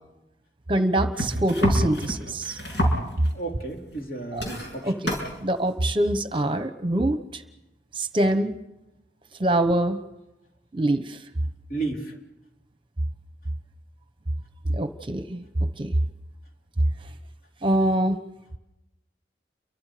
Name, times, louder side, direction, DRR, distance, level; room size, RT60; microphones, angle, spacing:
voice 1, 0.7-2.6 4.3-4.4 4.8-7.4 7.9-8.5 9.4-10.0 10.7-11.2 14.7-15.4 15.8-15.9 17.6-18.2, right 1 dB, 30° right, 9 dB, 1.0 m, -24 dB
sound 1, 1.2-3.4 3.9-4.1 4.3-5.3 6.3-6.4, equal, 80° left, 7.2 m, -29 dB
voice 2, 3.3-5.1 11.7-12.2, right 3 dB, 50° left, 0 dB, 3.9 m, -33 dB
29.5 x 24.0 x 5.1 m, 0.95 s
head